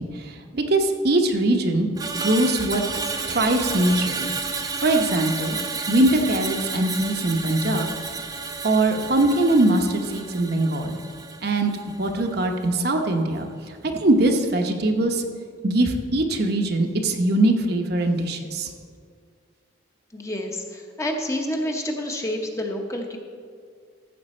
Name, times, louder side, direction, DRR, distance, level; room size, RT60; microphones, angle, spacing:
voice 1, 0.0-1.9 2.1-2.8 3.3-4.3 4.8-5.6 5.9-7.9 8.6-11.0 11.4-11.7 12.0-15.2 15.6-18.7, right 1 dB, 50° right, 4 dB, 0.8 m, -22 dB
Screech, 1.9-12.3 12.6-12.9, right 4 dB, 20° right, 0.6 m, -31 dB
voice 2, 20.1-23.2, left 1 dB, 15° left, 2 dB, 0.8 m, -28 dB
14.0 x 7.3 x 4.3 m, 2.1 s
head